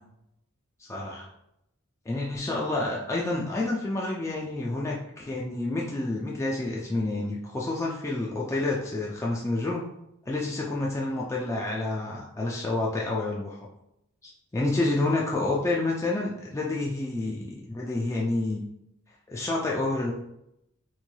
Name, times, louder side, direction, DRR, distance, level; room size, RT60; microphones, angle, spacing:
voice 1, 0.8-1.3 2.1-9.9 10.3-13.6 14.2-18.6 19.3-20.1, left 2 dB, 15° left, -3 dB, 0.3 m, -29 dB
3.7 x 3.1 x 2.2 m, 0.80 s
head